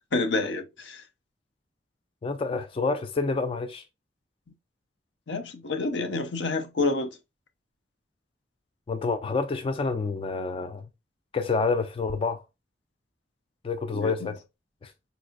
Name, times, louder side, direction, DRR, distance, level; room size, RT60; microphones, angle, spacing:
voice 1, 0.1-1.0 5.3-7.2 13.9-14.3, left 3 dB, 80° left, 0.6 m, -28 dB
voice 2, 2.2-3.8 8.9-10.9 11.3-12.4 13.6-14.4 14.8-14.9, left 4 dB, 30° left, 0.3 m, -28 dB
4.0 x 2.5 x 2.3 m
head